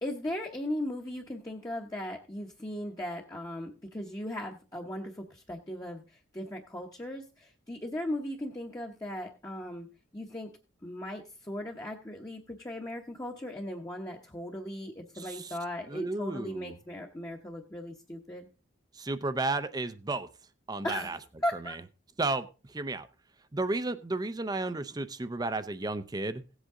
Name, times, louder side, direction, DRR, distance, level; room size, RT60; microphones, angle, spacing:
voice 1, 0.0-9.9 10.1-10.5 10.8-18.5 20.8-21.1 21.4-21.7, left 1 dB, 20° left, -1 dB, 0.9 m, -37 dB
voice 2, 15.2-15.6 15.9-16.8 19.0-20.3 20.7-21.2 22.2-23.1 23.5-26.4, right 2 dB, 20° right, 11 dB, 0.5 m, -33 dB
16.5 x 8.1 x 3.7 m, 0.33 s
head